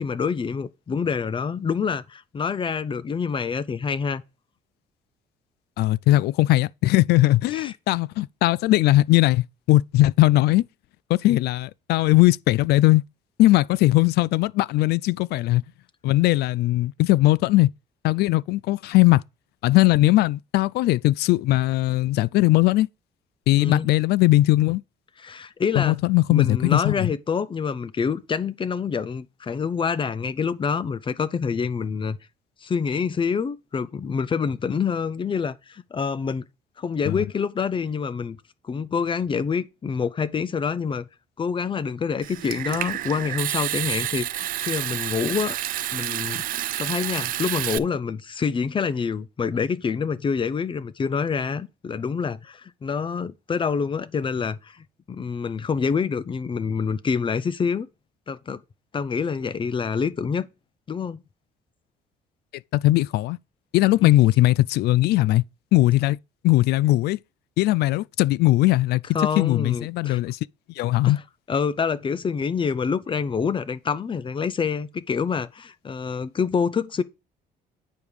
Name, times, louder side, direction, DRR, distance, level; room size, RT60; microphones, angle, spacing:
voice 1, 0.0-4.2 7.5-7.7 23.6-23.9 25.2-25.9 26.3-32.2 32.6-36.4 36.8-38.4 38.6-41.0 41.4-45.6 45.9-46.4 46.8-57.9 58.3-58.6 58.9-60.5 60.9-61.2 64.0-64.1 69.1-70.2 71.0-71.2 71.5-77.0, left 6 dB, 30° left, 0.7 m, -26 dB
voice 2, 5.8-10.6 11.1-13.0 13.4-15.6 16.0-17.7 18.0-19.2 19.6-22.9 23.5-24.8 25.8-27.1 37.1-37.2 62.7-63.4 63.7-65.4 65.7-66.2 66.4-67.2 67.6-69.0 69.4-70.4 70.8-71.2, left 17 dB, 75° left, 0.4 m, -19 dB
Water tap faucet / Sink (filling or washing) / Trickle dribble, 42.2-47.8, right 13 dB, 55° right, 0.4 m, -29 dB
9.0 x 5.2 x 4.8 m
cardioid pair, 110°, 17 cm